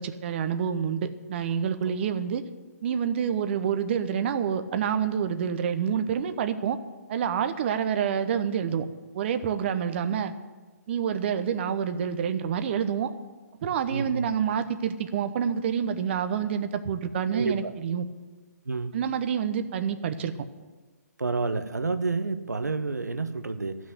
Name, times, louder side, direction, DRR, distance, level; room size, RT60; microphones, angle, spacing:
voice 1, 0.0-2.4 2.8-6.8 7.1-8.9 9.1-10.3 10.9-13.1 13.6-18.1 18.9-20.3, right 8 dB, 40° right, 10 dB, 0.9 m, -27 dB
voice 2, 13.9-14.2 17.3-17.7 18.7-18.9 21.2-23.8, right 3 dB, 85° right, 10 dB, 1.1 m, -29 dB
13.5 x 6.3 x 9.5 m, 1.3 s
figure-of-eight pair, 140°, 9 cm